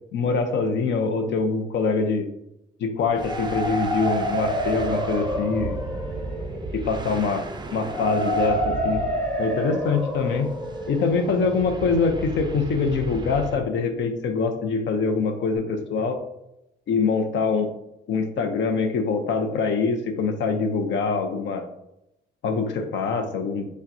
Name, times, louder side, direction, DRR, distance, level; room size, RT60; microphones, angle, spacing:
voice 1, 0.1-2.3 2.8-5.8 6.7-7.5 7.7-9.0 9.4-10.5 10.9-16.2 16.9-17.7 18.1-21.7 22.4-23.7, left 4 dB, 60° left, 6 dB, 0.6 m, -24 dB
sound 1, 3.0-12.9, equal, 5° left, 1.3 m, -29 dB
sound 2, 3.2-13.7, right 4 dB, 20° right, 0.4 m, -36 dB
5.7 x 2.2 x 2.6 m, 0.85 s
supercardioid pair, 70°, 21 cm